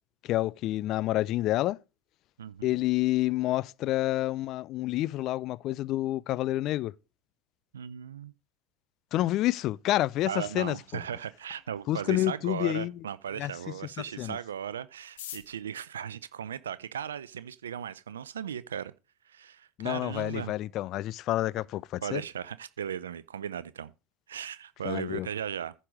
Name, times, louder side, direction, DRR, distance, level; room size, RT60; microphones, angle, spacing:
voice 1, 0.2-1.8 2.6-6.9 9.1-11.0 11.9-12.9 13.4-13.5 14.2-14.4 19.8-22.2 24.8-25.3, left 15 dB, 50° left, 0.4 m, -28 dB
voice 2, 7.7-8.3 10.3-18.9 19.3-20.5 22.0-23.9 24.3-25.7, right 8 dB, 90° right, 0.5 m, -37 dB
sound 1, 15.0-17.3 18.1-18.2 18.4-18.5 18.7-19.2 19.5-19.6 19.8-20.2 20.6-20.8 21.1-21.4, left 11 dB, 80° left, 1.4 m, -47 dB
10.0 x 5.4 x 6.3 m
hypercardioid pair, 90°, 0 cm